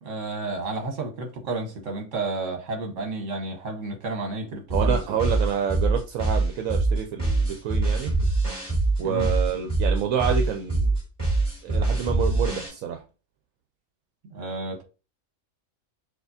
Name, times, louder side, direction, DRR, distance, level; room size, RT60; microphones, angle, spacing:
voice 1, 0.0-5.0 9.0-9.3 14.3-14.8, right 3 dB, 65° right, 1.4 m, -31 dB
sound 1, 4.7-12.7, right 2 dB, 25° right, 2.5 m, -23 dB
voice 2, 4.7-8.1 9.0-11.0 11.6-13.0, right 8 dB, 85° right, 1.0 m, -28 dB
6.6 x 2.4 x 2.6 m
omnidirectional pair, 1.4 m